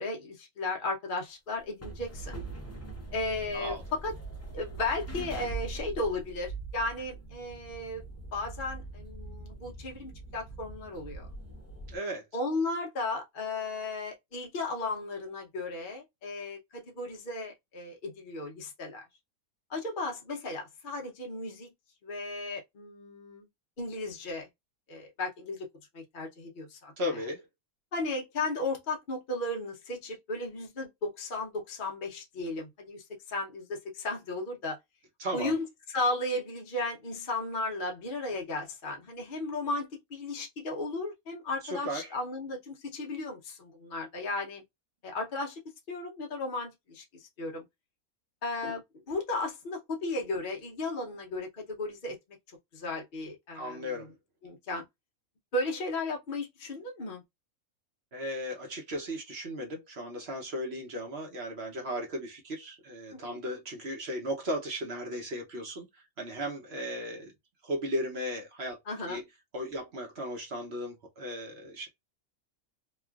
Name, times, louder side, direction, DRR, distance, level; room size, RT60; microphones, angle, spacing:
voice 1, 0.0-2.4 3.1-3.7 4.0-4.1 4.5-8.0 8.3-11.3 12.3-19.1 19.7-21.7 22.0-23.5 23.8-24.5 24.9-25.7 25.9-26.9 27.9-34.8 35.3-44.6 45.0-45.6 45.9-47.6 48.4-48.8 49.1-52.2 52.7-53.8 54.4-54.8 55.5-57.2 63.1-63.4 68.9-69.2, left 2 dB, 50° left, 0.7 m, -35 dB
sound 1, 1.6-12.0, right 3 dB, 20° left, 0.3 m, -42 dB
voice 2, 11.9-12.2 27.0-27.5 35.2-35.5 41.6-42.2 53.5-54.1 58.1-67.3 67.6-68.8 69.1-69.2 69.5-71.9, equal, 55° right, 0.9 m, -36 dB
3.1 x 2.3 x 2.3 m
omnidirectional pair, 1.5 m